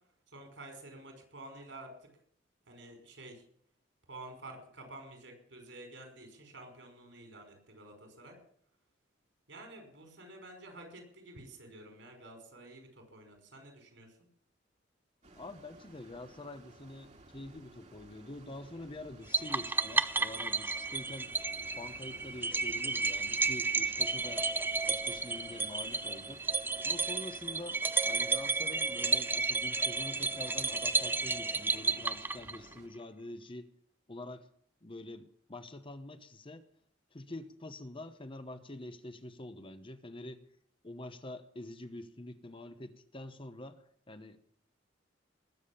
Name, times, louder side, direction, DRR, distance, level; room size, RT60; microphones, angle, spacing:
voice 1, 0.3-1.9 2.7-3.4 4.1-8.4 9.5-14.2, right 2 dB, 70° right, 4 dB, 5.4 m, -50 dB
sound 1, 15.2-32.9, right 2 dB, 40° right, 2.2 m, -55 dB
voice 2, 15.4-21.3 21.8-24.5 24.9-26.4 26.8-33.7 34.1-34.5 34.8-36.7 37.1-40.4 40.8-44.5, left 1 dB, 30° left, 10 dB, 1.0 m, -46 dB
sound 2, 19.3-32.8, right 3 dB, 10° right, 0.6 m, -32 dB
20.0 x 7.3 x 8.7 m, 0.63 s
head